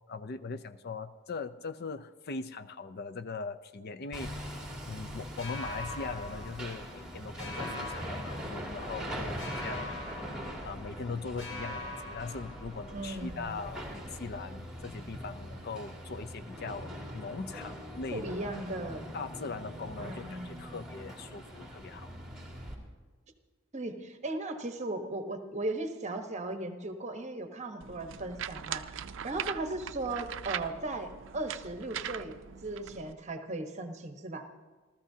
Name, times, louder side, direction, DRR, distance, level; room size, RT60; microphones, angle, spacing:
voice 1, 0.1-4.5 4.9-9.9 10.6-18.3 19.1-22.1, left 4 dB, 50° left, 12 dB, 0.5 m, -40 dB
Hammer, 4.1-22.7, equal, 5° right, 2.5 m, -42 dB
sound 1, 5.4-7.1 7.4-9.0 9.4-11.1 11.4-13.1, left 2 dB, 65° left, 6.3 m, -43 dB
voice 2, 12.9-13.6 18.1-19.0 20.0-20.8 23.7-29.0 29.2-32.3 32.6-34.5, right 2 dB, 35° right, 6 dB, 1.1 m, -37 dB
sound 2, 27.8-33.1, right 9 dB, 65° right, 0.5 m, -40 dB
29.0 x 13.5 x 2.8 m, 1.3 s
head